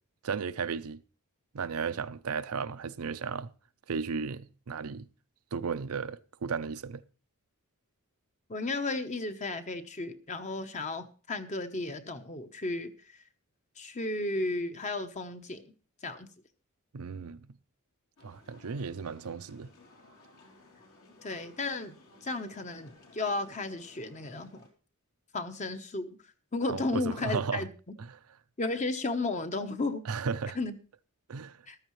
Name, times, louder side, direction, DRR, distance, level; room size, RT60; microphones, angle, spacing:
voice 1, 0.2-1.0 1.5-3.5 3.9-5.0 5.5-7.0 16.9-17.5 18.2-19.7 26.7-27.6 28.0-28.1 30.1-30.6 31.3-31.6, right 5 dB, 75° right, 0.6 m, -34 dB
voice 2, 8.5-12.9 13.8-15.7 16.0-16.3 21.2-22.0 22.2-24.7 25.3-26.2 26.5-27.7 28.6-30.1 30.5-30.7 31.7-31.8, left 2 dB, 30° left, 0.9 m, -34 dB
sound 1, 18.2-24.7, left 3 dB, 75° left, 3.4 m, -58 dB
14.0 x 13.0 x 3.1 m
head